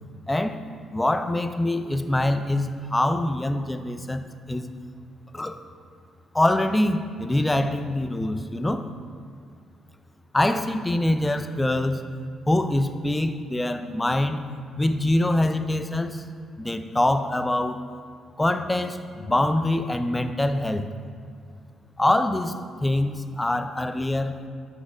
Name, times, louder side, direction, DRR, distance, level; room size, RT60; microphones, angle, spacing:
voice 1, 0.3-0.6 0.9-4.7 5.3-5.6 6.3-8.9 10.3-12.0 12.5-14.4 14.8-16.2 16.6-17.8 18.4-20.9 22.0-24.4, left 1 dB, 15° left, 9 dB, 0.4 m, -24 dB
6.0 x 4.2 x 4.8 m, 2.2 s
cardioid pair, 90°, 0 cm